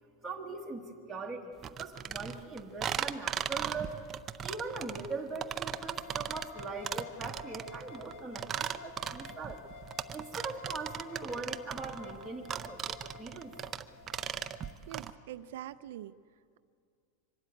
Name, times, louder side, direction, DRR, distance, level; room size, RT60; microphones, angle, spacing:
voice 1, 0.2-1.5 1.8-4.0 4.4-9.6 10.1-13.5, right 3 dB, ahead, -4 dB, 1.2 m, -41 dB
sound 1, 1.6-15.1, right 9 dB, 20° right, 0.5 m, -38 dB
sound 2, 5.7-14.8, left 7 dB, 50° left, 0.8 m, -52 dB
voice 2, 14.9-16.1, right 12 dB, 70° right, 12 dB, 0.5 m, -44 dB
24.5 x 13.0 x 9.3 m, 2.3 s
supercardioid pair, 170°, 0 cm